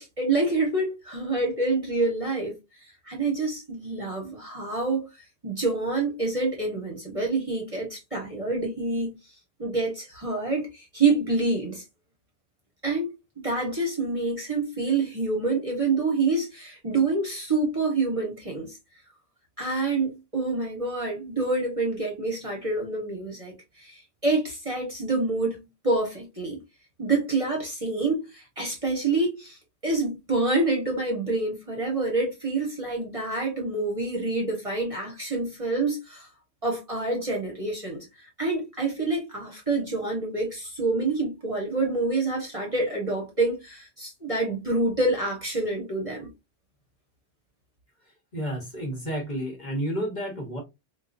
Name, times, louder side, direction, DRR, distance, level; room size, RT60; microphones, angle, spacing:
voice 1, 0.0-2.5 3.1-5.1 5.4-9.2 9.6-11.8 12.8-13.1 13.4-18.8 19.6-25.6 25.8-26.6 27.0-36.3 36.6-38.0 38.4-46.3, right 3 dB, 30° right, 1.2 m, -27 dB
voice 2, 48.3-50.6, equal, 40° left, 1.3 m, -31 dB
3.9 x 2.8 x 2.5 m
omnidirectional pair, 1.3 m